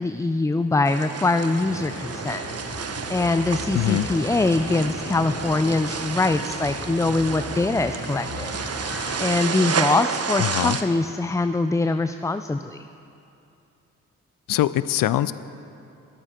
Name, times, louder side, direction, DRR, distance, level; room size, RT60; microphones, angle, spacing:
voice 1, 0.0-2.4 3.1-8.5 9.2-12.9, left 3 dB, 10° left, 10 dB, 0.4 m, -23 dB
sound 1, 0.8-10.8, right 6 dB, 45° right, 1.0 m, -31 dB
sound 2, 1.5-9.2, left 1 dB, 90° left, 3.6 m, -36 dB
voice 2, 3.7-4.1 10.4-10.8 14.5-15.3, left 13 dB, 65° left, 16 dB, 0.6 m, -22 dB
21.0 x 8.9 x 4.4 m, 2.7 s
hypercardioid pair, 45°, 36 cm